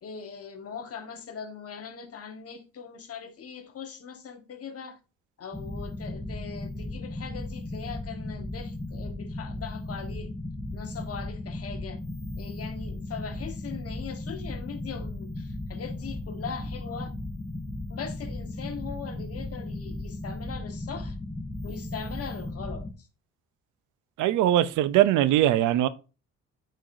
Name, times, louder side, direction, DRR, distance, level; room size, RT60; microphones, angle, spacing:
voice 1, 0.0-5.0 5.4-10.3 10.7-12.0 12.4-17.1 17.9-21.2 21.6-23.1, left 6 dB, 50° left, 1.3 m, -40 dB
sound 1, 5.5-22.9, left 2 dB, 10° left, 0.8 m, -36 dB
voice 2, 24.2-25.9, right 13 dB, 90° right, 0.6 m, -21 dB
8.9 x 4.7 x 2.6 m
cardioid pair, 90°, 30 cm